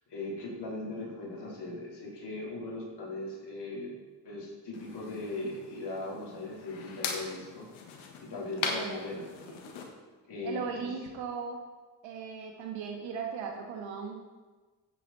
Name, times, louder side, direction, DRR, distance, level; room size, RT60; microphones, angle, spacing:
voice 1, 0.1-3.9 4.2-9.3 10.3-10.9, left 2 dB, 55° left, -3 dB, 4.2 m, -39 dB
sound 1, 4.7-9.9, left 5 dB, 70° left, 1.6 m, -40 dB
voice 2, 8.6-9.1 9.4-9.6 10.4-11.6 12.0-14.3, right 5 dB, 65° right, 1 dB, 2.1 m, -38 dB
13.5 x 8.4 x 4.3 m, 1.3 s
hypercardioid pair, 40°, 50 cm